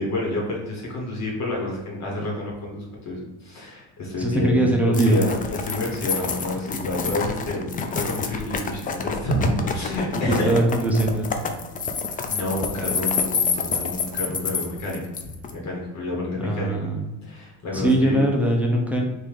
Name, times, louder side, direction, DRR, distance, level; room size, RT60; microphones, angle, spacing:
voice 1, 0.0-10.5 12.3-16.9 17.2-18.3, left 1 dB, 50° left, -2 dB, 1.6 m, -29 dB
voice 2, 4.2-5.2 10.3-11.3 16.4-17.0 17.7-19.0, right 1 dB, 5° right, -1 dB, 0.8 m, -21 dB
sound 1, 4.9-15.5, left 5 dB, 25° left, 0.4 m, -28 dB
3.7 x 2.9 x 4.8 m, 1.1 s
cardioid pair, 115°, 35 cm